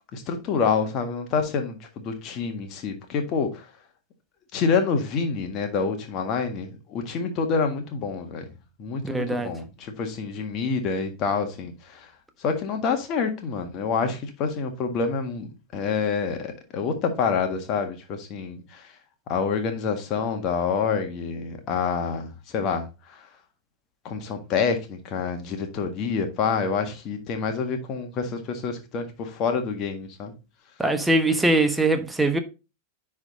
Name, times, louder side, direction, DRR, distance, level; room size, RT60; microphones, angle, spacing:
voice 1, 0.1-3.6 4.5-8.5 8.8-12.1 12.4-18.8 19.3-22.9 24.1-30.3, left 5 dB, 35° left, 1.6 m, -27 dB
voice 2, 9.0-9.5 30.8-32.4, right 2 dB, 5° right, 1.0 m, -22 dB
9.8 x 3.7 x 4.0 m
figure-of-eight pair, 90°, 0 cm